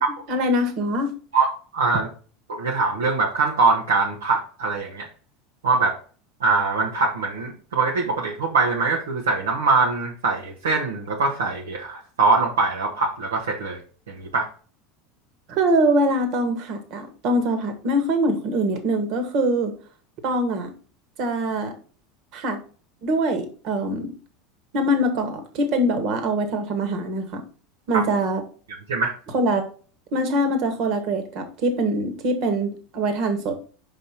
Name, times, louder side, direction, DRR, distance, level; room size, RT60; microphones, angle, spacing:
voice 1, 0.3-1.1 15.5-19.7 20.2-20.7 21.2-21.7 22.3-22.6 23.0-24.1 24.7-27.5 27.9-28.4 29.3-29.6 30.1-33.6, right 1 dB, 55° right, 7 dB, 1.7 m, -23 dB
voice 2, 1.7-2.1 2.5-5.1 5.6-6.0 6.4-13.8 14.1-14.5 27.9-28.0 28.9-29.1, right 3 dB, 80° right, 0 dB, 1.2 m, -22 dB
5.6 x 5.3 x 4.3 m, 0.39 s
hypercardioid pair, 80°, 0 cm